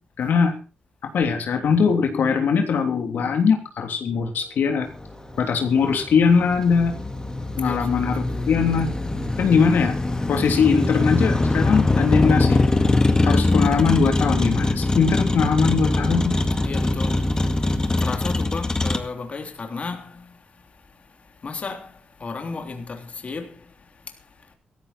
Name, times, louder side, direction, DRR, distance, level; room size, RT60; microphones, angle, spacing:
voice 1, 0.2-0.5 1.0-4.9 5.4-6.9 7.6-8.9 9.4-9.9 10.3-12.6 13.2-16.4, left 6 dB, 75° left, 3.1 m, -21 dB
sound 1, 4.1-13.5, right 4 dB, 40° right, 6.3 m, -47 dB
Motor vehicle (road), 4.9-19.0, left 2 dB, 20° left, 2.0 m, -22 dB
voice 2, 7.6-8.5 16.6-24.5, left 4 dB, 40° left, 3.4 m, -35 dB
16.5 x 14.5 x 4.4 m
cardioid pair, 95°, 3 cm